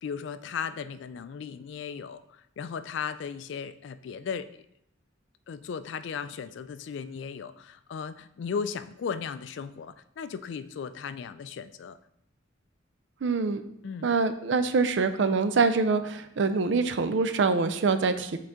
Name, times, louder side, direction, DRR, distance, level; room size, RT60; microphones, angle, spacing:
voice 1, 0.0-4.6 5.5-12.0 13.8-14.1, left 6 dB, 60° left, 12 dB, 0.3 m, -36 dB
voice 2, 13.2-13.6 14.0-18.4, right 4 dB, 60° right, 11 dB, 0.4 m, -25 dB
7.7 x 3.8 x 3.6 m, 0.76 s
head